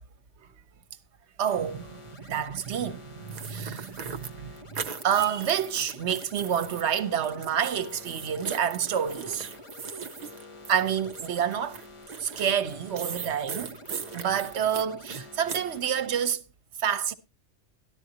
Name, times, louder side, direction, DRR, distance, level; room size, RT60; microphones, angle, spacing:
voice 1, 1.4-4.5 5.0-9.5 10.7-11.8 12.2-13.8 14.1-16.4 16.8-17.1, right 8 dB, 70° right, 1.1 m, -28 dB
sound 1, 1.5-16.3, left 2 dB, 30° left, 0.8 m, -48 dB
sound 2, 3.3-6.8 7.1-15.7, right 6 dB, 45° right, 0.6 m, -39 dB
Organ, 4.4-4.5 4.8-4.9 5.8-12.1, left 9 dB, 80° left, 2.9 m, -53 dB
13.0 x 11.5 x 2.8 m
omnidirectional pair, 1.2 m